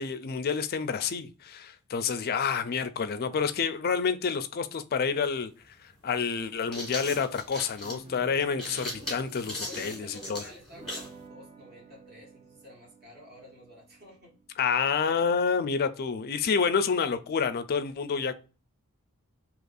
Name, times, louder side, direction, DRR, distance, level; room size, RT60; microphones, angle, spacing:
voice 1, 0.0-10.4 14.6-18.3, left 6 dB, 45° left, 0.4 m, -29 dB
sound 1, 5.3-5.4 6.4-11.2, left 1 dB, 5° left, 1.5 m, -38 dB
sound 2, 7.1-15.6, right 3 dB, 30° right, 0.4 m, -51 dB
voice 2, 9.6-14.4, left 1 dB, 45° right, 1.5 m, -51 dB
2.9 x 2.6 x 3.9 m
head